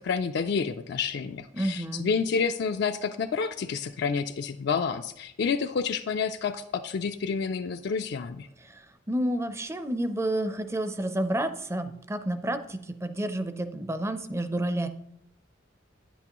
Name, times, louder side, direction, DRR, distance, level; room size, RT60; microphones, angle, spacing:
voice 1, 0.0-8.5, left 5 dB, 60° left, 7 dB, 0.4 m, -29 dB
voice 2, 1.5-2.1 8.6-14.9, right 1 dB, 15° right, 10 dB, 0.5 m, -30 dB
9.7 x 8.2 x 2.9 m, 0.78 s
head